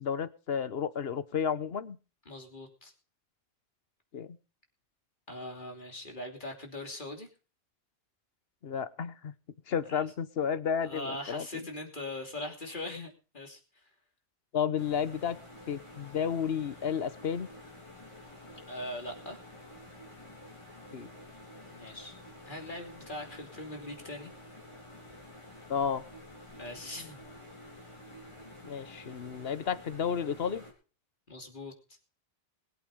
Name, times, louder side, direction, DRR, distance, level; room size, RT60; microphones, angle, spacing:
voice 1, 0.0-2.0 4.1-4.4 8.6-9.3 9.7-11.5 14.5-15.4 15.7-17.5 20.9-21.1 25.7-26.0 28.6-30.6, left 7 dB, 70° left, 15 dB, 1.2 m, -32 dB
voice 2, 2.2-2.9 5.3-7.3 9.8-10.1 10.8-13.8 18.7-19.4 21.7-22.2 22.4-24.3 26.6-27.2 31.3-31.7, left 1 dB, 50° left, 3 dB, 3.2 m, -41 dB
sound 1, 14.8-30.7, left 1 dB, 30° left, 4.3 m, -50 dB
21.0 x 8.4 x 5.1 m, 0.36 s
omnidirectional pair, 1.1 m